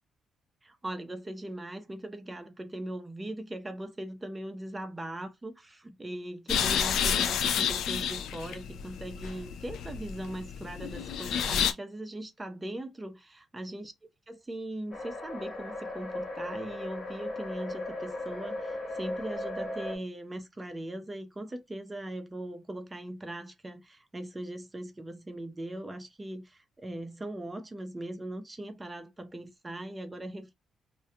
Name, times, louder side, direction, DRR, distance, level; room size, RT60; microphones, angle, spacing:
voice 1, 0.6-13.9 14.3-30.5, right 1 dB, 15° right, 0.5 m, -40 dB
sound 1, 6.5-11.7, left 8 dB, 75° left, 0.3 m, -30 dB
sound 2, 14.9-20.0, left 1 dB, 25° left, 0.9 m, -37 dB
2.2 x 2.2 x 2.7 m
cardioid pair, 90°, 0 cm